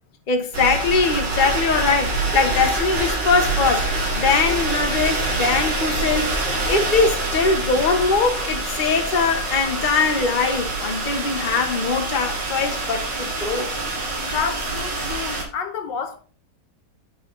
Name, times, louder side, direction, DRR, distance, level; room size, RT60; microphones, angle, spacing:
voice 1, 0.3-6.3 6.7-13.7, left 4 dB, 30° left, 1.2 m, -21 dB
sound 1, 0.5-15.4, right 2 dB, 85° right, 2.8 m, -25 dB
voice 2, 14.2-16.2, left 6 dB, 80° left, 1.7 m, -29 dB
8.0 x 6.5 x 3.9 m
omnidirectional pair, 1.9 m